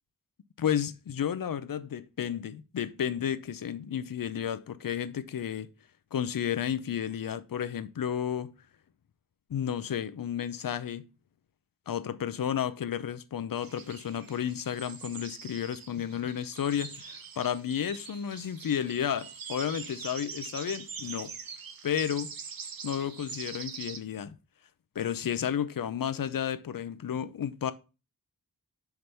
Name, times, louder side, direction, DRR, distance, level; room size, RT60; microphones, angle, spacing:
voice 1, 0.6-5.7 6.1-8.5 9.5-11.1 11.9-21.3 21.8-22.3 22.8-24.4 25.0-27.7, left 9 dB, 70° left, 0.6 m, -32 dB
sound 1, 13.6-24.0, right 6 dB, 75° right, 0.9 m, -43 dB
5.1 x 4.6 x 5.5 m
cardioid pair, 50°, 36 cm